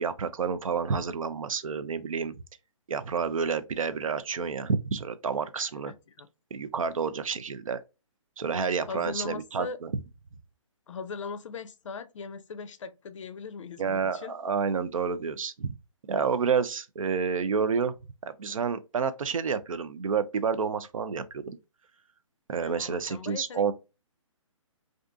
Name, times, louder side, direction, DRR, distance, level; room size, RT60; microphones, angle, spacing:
voice 1, 0.0-2.4 2.9-5.9 6.5-7.8 8.4-9.9 13.8-15.7 16.1-17.9 18.2-21.6 22.5-23.7, right 6 dB, 85° right, 0.4 m, -29 dB
voice 2, 5.9-6.3 8.9-9.8 10.9-14.4 22.6-23.7, left 5 dB, 70° left, 0.4 m, -39 dB
2.5 x 2.4 x 2.3 m
hypercardioid pair, 145°, 17 cm